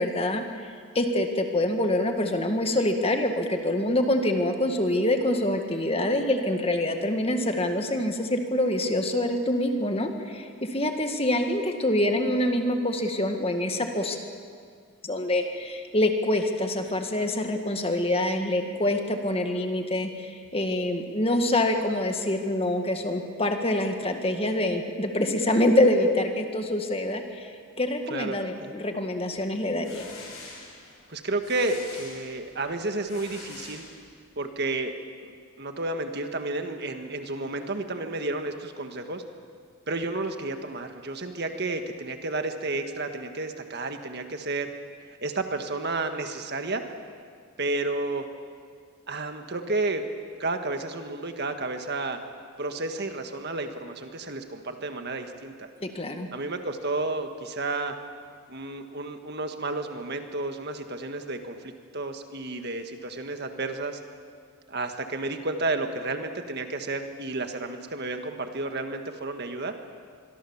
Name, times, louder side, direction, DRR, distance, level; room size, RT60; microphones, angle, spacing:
voice 1, 0.0-14.2 15.0-30.1 55.8-56.3, left 1 dB, 25° left, 5 dB, 1.8 m, -26 dB
voice 2, 28.1-28.7 31.1-33.8 34.3-34.9 35.2-39.2 39.9-44.7 45.2-46.8 47.6-48.3 49.1-50.0 50.4-52.2 52.6-55.7 56.3-57.9 58.5-64.0 64.7-69.7, right 2 dB, 50° right, 6 dB, 1.7 m, -31 dB
sound 1, 29.6-34.4, left 3 dB, 85° left, 7.0 m, -46 dB
25.0 x 23.0 x 7.2 m, 2.1 s
head